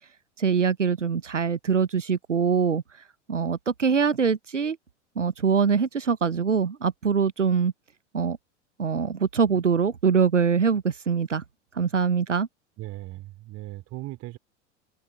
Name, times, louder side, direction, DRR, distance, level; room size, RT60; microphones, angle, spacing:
voice 1, 0.4-2.8 3.3-4.8 5.2-7.7 8.1-8.4 8.8-11.4 11.7-12.5, right 6 dB, 85° right, 0.8 m, -23 dB
voice 2, 12.8-14.4, right 17 dB, 40° right, 2.9 m, -38 dB
figure-of-eight pair, 80°, 36 cm